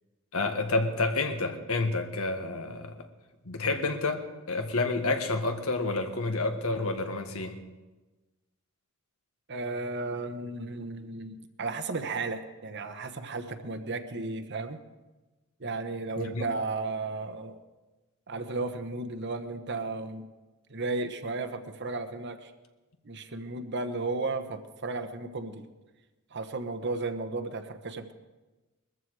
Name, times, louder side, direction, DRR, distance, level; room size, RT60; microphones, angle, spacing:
voice 1, 0.3-3.0 3.4-4.2 4.5-7.6 16.3-16.4, left 3 dB, 75° left, 6 dB, 1.6 m, -29 dB
voice 2, 9.5-14.8 15.6-17.6 18.3-20.2 20.7-22.5 23.0-25.6 26.3-28.1, right 3 dB, 50° right, 9 dB, 1.1 m, -34 dB
21.0 x 14.0 x 4.8 m, 1.2 s
head